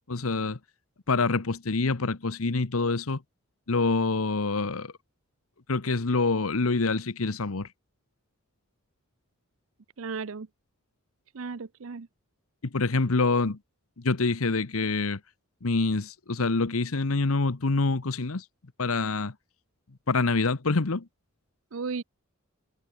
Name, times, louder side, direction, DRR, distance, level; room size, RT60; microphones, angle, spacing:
voice 1, 0.1-0.6 1.1-3.2 3.7-4.9 5.7-7.7 12.7-13.6 14.0-15.2 15.6-18.5 18.8-19.3 20.1-21.0, left 3 dB, 80° left, 1.1 m, -26 dB
voice 2, 10.0-10.5 11.3-12.1 21.7-22.0, right 4 dB, 70° right, 0.6 m, -34 dB
head